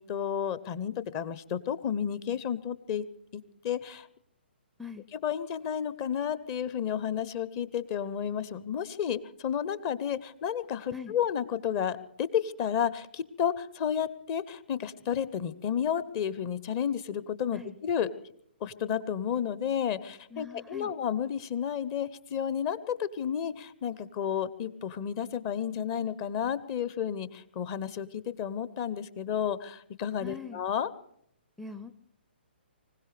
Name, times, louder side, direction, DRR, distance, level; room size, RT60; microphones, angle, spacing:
voice 1, 0.0-3.0 3.3-4.1 5.2-18.1 18.6-30.9, left 8 dB, 30° left, 16 dB, 0.8 m, -32 dB
voice 2, 20.3-20.9 30.2-30.6 31.6-31.9, left 6 dB, ahead, 12 dB, 0.5 m, -42 dB
25.0 x 16.5 x 3.4 m, 0.71 s
figure-of-eight pair, 130°, 6 cm